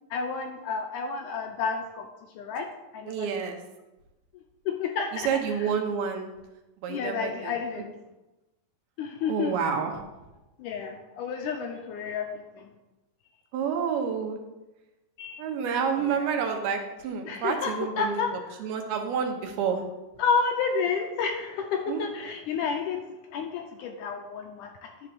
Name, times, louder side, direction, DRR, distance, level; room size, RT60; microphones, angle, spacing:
voice 1, 0.1-2.1 2.4-2.7 2.9-3.3 4.7-5.3 6.9-7.9 9.0-9.7 10.6-12.7 15.2-15.4 16.0-16.3 17.3-18.3 20.2-23.0 23.3-25.1, left 5 dB, 80° left, 4 dB, 1.9 m, -30 dB
voice 2, 3.1-3.6 5.1-6.3 6.8-7.5 9.3-9.9 13.5-14.4 15.4-18.2 18.6-19.8 21.9-22.0, right 7 dB, 90° right, 3 dB, 3.1 m, -29 dB
11.5 x 4.3 x 6.7 m, 1.0 s
omnidirectional pair, 4.3 m